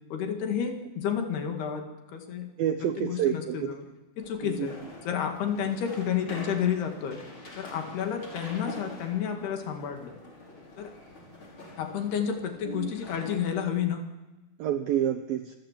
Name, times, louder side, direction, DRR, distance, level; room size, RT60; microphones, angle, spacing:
voice 1, 0.1-1.9 2.1-2.5 3.0-3.9 4.2-4.7 5.1-7.2 7.6-10.2 10.8-10.9 11.8-14.0, left 8 dB, 65° left, 4 dB, 3.7 m, -30 dB
voice 2, 2.6-3.7 4.4-4.7 12.6-12.9 14.6-15.5, right 10 dB, 75° right, 7 dB, 2.2 m, -28 dB
sound 1, 4.2-13.6, left 2 dB, 25° left, 5.6 m, -46 dB
26.5 x 21.5 x 7.4 m, 1.1 s
omnidirectional pair, 5.4 m